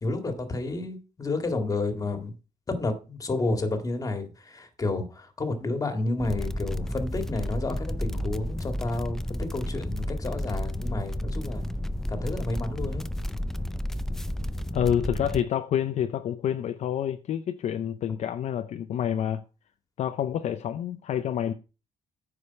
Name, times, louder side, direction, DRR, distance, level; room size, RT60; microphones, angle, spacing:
voice 1, 0.0-2.3 2.7-11.7 12.1-13.1, left 2 dB, 25° left, 1.9 m, -30 dB
sound 1, 6.2-15.4, left 1 dB, 5° left, 0.4 m, -32 dB
voice 2, 14.7-19.4 20.0-21.5, left 9 dB, 60° left, 0.6 m, -28 dB
9.7 x 4.9 x 5.7 m
cardioid pair, 125°, 13 cm